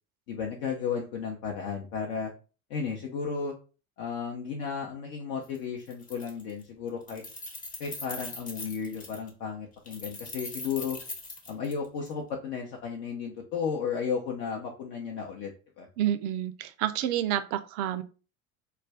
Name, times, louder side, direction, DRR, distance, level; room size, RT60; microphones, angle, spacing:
voice 1, 0.3-2.3 2.7-3.5 4.0-7.2 7.8-11.0 11.5-15.5 15.8-15.9, left 6 dB, 55° left, 0 dB, 0.7 m, -34 dB
Keys jangling, 5.4-5.6 5.9-6.6 6.9-9.3 9.9-12.1, left 2 dB, 20° left, 0.8 m, -41 dB
voice 2, 16.0-18.0, right 11 dB, 45° right, 11 dB, 0.4 m, -29 dB
2.4 x 2.2 x 3.4 m, 0.35 s
figure-of-eight pair, 70°, 42 cm